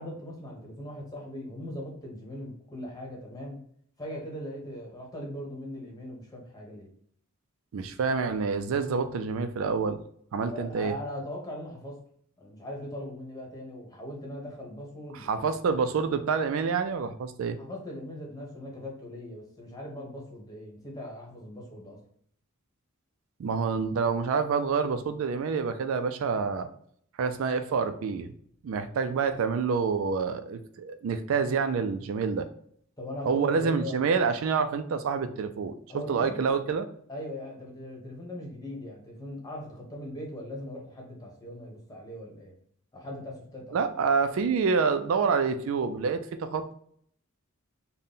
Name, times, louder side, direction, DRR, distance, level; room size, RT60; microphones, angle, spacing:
voice 1, 0.0-3.6 4.0-6.9 10.4-12.0 12.4-15.4 17.6-22.0 33.0-34.0 35.9-36.4 37.1-42.5 42.9-43.8, left 1 dB, 15° left, -1 dB, 1.0 m, -40 dB
voice 2, 7.7-10.0 10.3-10.9 15.1-17.6 23.4-26.7 27.2-28.3 28.6-32.5 33.3-36.9 43.7-46.7, right 5 dB, 70° right, 9 dB, 0.3 m, -27 dB
3.7 x 2.1 x 3.8 m, 0.64 s
head